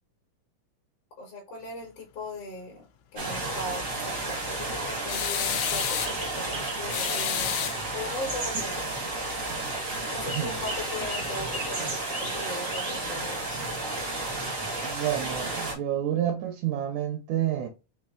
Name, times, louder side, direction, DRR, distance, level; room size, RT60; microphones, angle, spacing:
voice 1, 1.2-2.9 3.1-9.0 10.1-13.6, left 1 dB, 55° left, 2.0 m, -39 dB
sound 1, 3.2-15.7, right 2 dB, 55° right, 0.8 m, -32 dB
sound 2, 5.1-6.2 6.9-8.2, left 12 dB, 90° left, 1.6 m, -30 dB
voice 2, 10.3-10.6 14.8-17.7, right 11 dB, 80° right, 1.8 m, -29 dB
5.4 x 2.6 x 3.7 m
omnidirectional pair, 3.8 m